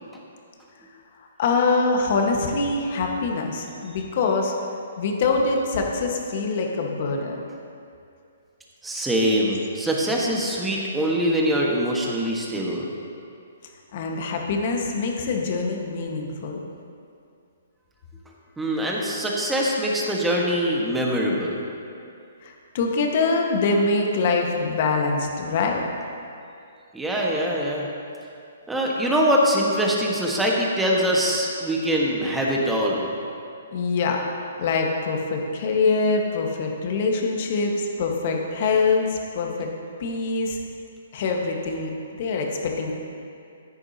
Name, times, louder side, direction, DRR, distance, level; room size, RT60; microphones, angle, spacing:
voice 1, 1.4-4.5 5.0-7.4 13.9-16.6 22.4-25.8 33.7-34.2 34.6-39.7 40.0-40.6 41.1-41.9 42.2-43.0, left 3 dB, 50° left, 1 dB, 1.5 m, -24 dB
voice 2, 8.8-12.9 18.6-21.6 26.9-27.9 28.7-33.1, equal, 5° right, -3 dB, 1.5 m, -23 dB
14.5 x 9.8 x 2.9 m, 2.5 s
hypercardioid pair, 135°, 0 cm